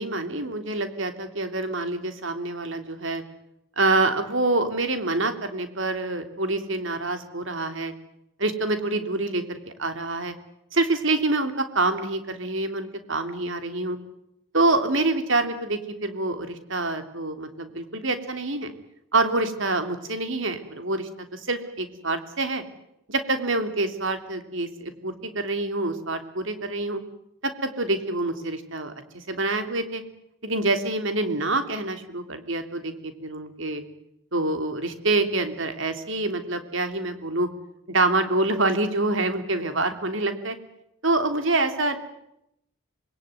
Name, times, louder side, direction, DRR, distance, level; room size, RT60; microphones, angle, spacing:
voice 1, 0.0-3.2 3.8-7.9 8.4-10.3 10.7-14.0 14.5-18.7 19.1-22.6 23.1-27.0 27.4-30.0 30.4-33.8 34.3-37.5 37.9-40.6 41.0-42.0, right 2 dB, 60° right, 8 dB, 3.3 m, -26 dB
27.0 x 21.5 x 9.5 m, 0.80 s
head